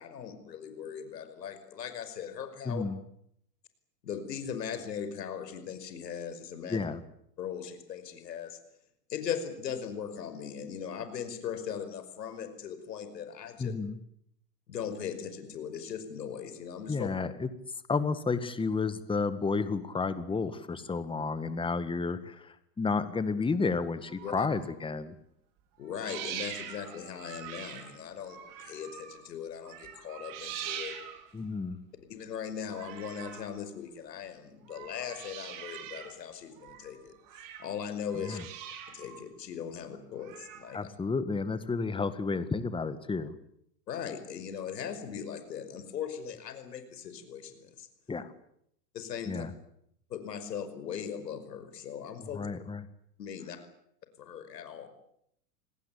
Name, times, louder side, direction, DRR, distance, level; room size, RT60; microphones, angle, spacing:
voice 1, 0.0-2.8 4.0-6.8 7.4-8.6 9.1-13.7 14.7-17.1 24.2-24.5 25.8-30.9 32.1-37.1 37.6-38.4 38.9-40.9 43.9-47.9 48.9-49.5 50.1-52.4 53.2-53.6 54.2-54.9, left 8 dB, 80° left, 10 dB, 5.5 m, -39 dB
voice 2, 2.7-3.0 6.7-7.0 13.6-14.0 16.9-17.5 17.9-25.2 31.3-31.8 38.2-38.4 40.7-43.4 48.1-48.3 49.3-49.5 52.3-52.9, left 4 dB, 10° left, 12 dB, 1.8 m, -31 dB
sound 1, 24.0-24.8 25.8-29.3 29.6-31.4 32.6-33.6 34.6-36.2 36.5-37.8 38.1-39.2 40.2-40.8, right 9 dB, 40° right, 4.9 m, -43 dB
27.0 x 19.5 x 8.6 m, 0.72 s
hypercardioid pair, 115°, 49 cm